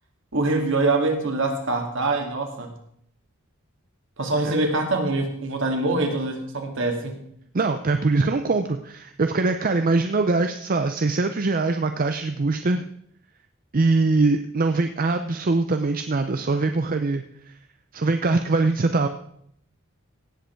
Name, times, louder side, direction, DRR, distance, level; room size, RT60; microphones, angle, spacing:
voice 1, 0.3-2.7 4.2-7.2, right 2 dB, 65° right, 3 dB, 2.3 m, -24 dB
voice 2, 7.5-12.8 13.7-17.5 17.9-19.1, right 3 dB, 40° right, 8 dB, 0.6 m, -22 dB
17.0 x 7.7 x 4.6 m, 0.69 s
head